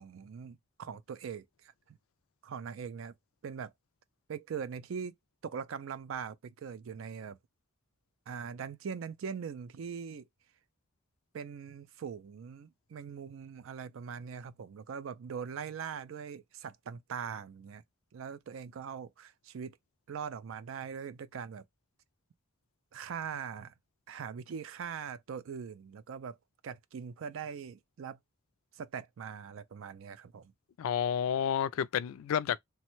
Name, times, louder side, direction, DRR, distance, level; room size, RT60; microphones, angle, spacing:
voice 1, 0.0-2.0 2.4-3.1 3.4-3.7 4.3-5.1 5.4-7.4 8.3-10.3 11.3-17.8 18.1-19.8 20.1-21.6 22.9-23.7 24.1-26.4 26.6-28.2 28.7-30.5, right 6 dB, 70° right, 0.4 m, -41 dB
voice 2, 30.8-32.6, left 8 dB, 75° left, 0.3 m, -30 dB
3.1 x 2.1 x 3.0 m
head